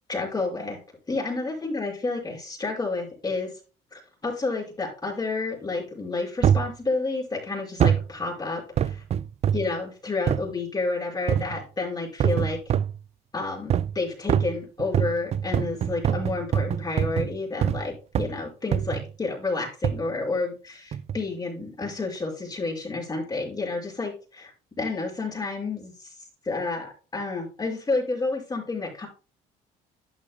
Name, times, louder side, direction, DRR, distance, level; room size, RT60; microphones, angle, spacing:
voice 1, 0.1-0.8 1.1-3.5 3.9-9.0 9.5-12.6 13.3-24.5 24.8-26.2 26.4-29.1, left 3 dB, 25° left, -1 dB, 5.2 m, -30 dB
sound 1, 6.4-6.7 7.8-8.1 8.8-9.7 10.3-10.5 11.3-11.6 12.2-13.0 13.7-14.0 14.3-17.9 18.1-18.4 18.7-19.1 19.8-20.1 20.9-21.2 21.8-21.9, right 9 dB, 40° right, 0.4 m, -24 dB
12.0 x 8.5 x 2.2 m, 0.35 s
cardioid pair, 110°, 17 cm